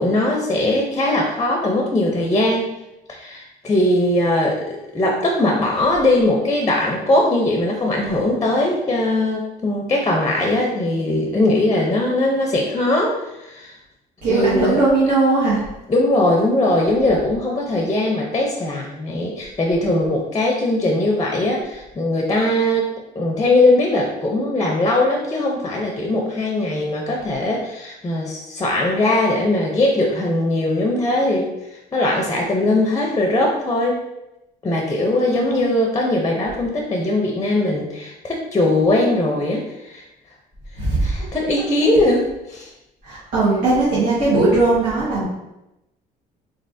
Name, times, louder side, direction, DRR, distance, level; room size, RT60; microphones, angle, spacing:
voice 1, 0.0-2.7 3.1-13.8 14.3-14.8 15.9-22.9 23.1-34.0 34.6-40.0 41.0-42.7, left 1 dB, 20° left, 0 dB, 0.6 m, -20 dB
voice 2, 14.2-15.6 35.3-35.7 40.8-41.1 43.0-45.2, right 3 dB, 55° right, -10 dB, 1.5 m, -18 dB
3.8 x 3.3 x 2.6 m, 0.92 s
cardioid pair, 110°, 17 cm